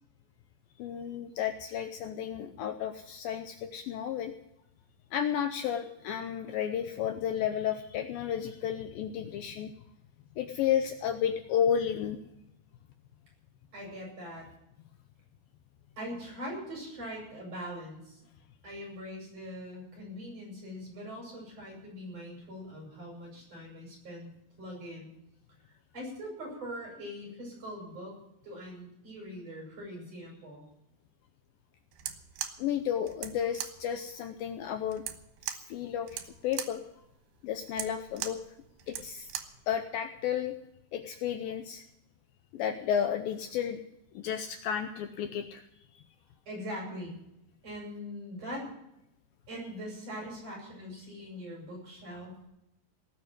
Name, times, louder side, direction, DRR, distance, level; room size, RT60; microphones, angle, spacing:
voice 1, 0.8-4.3 5.1-9.7 10.4-12.2 32.6-35.0 35.5-36.8 37.4-38.4 38.9-39.3 39.7-40.6 40.9-41.8 42.5-43.8 44.1-45.6 46.0-46.1, left 9 dB, 75° left, 7 dB, 2.3 m, -32 dB
voice 2, 13.7-14.5 16.0-18.2 18.6-24.3 24.6-25.1 25.7-28.2 28.4-30.6 46.5-47.2 47.6-48.7 49.5-52.5, equal, 40° right, -2 dB, 9.1 m, -42 dB
sound 1, 31.9-39.6, right 11 dB, 85° right, 3.1 m, -41 dB
18.5 x 6.9 x 9.6 m, 0.84 s
omnidirectional pair, 4.6 m